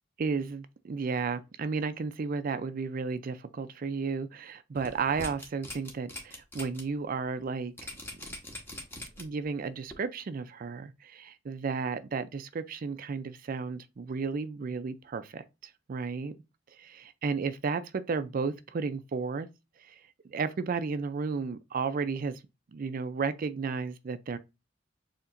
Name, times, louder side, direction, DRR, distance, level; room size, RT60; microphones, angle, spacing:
voice 1, 0.2-7.7 8.3-8.4 9.2-16.3 16.8-19.5 19.8-20.0 20.3-22.4 22.7-24.4, right 5 dB, 50° right, 0.4 m, -33 dB
sound 1, 4.7-6.8 7.2-7.3 7.8-9.4 9.9-10.0, left 1 dB, 15° left, 1.1 m, -42 dB
6.9 x 2.9 x 2.5 m
head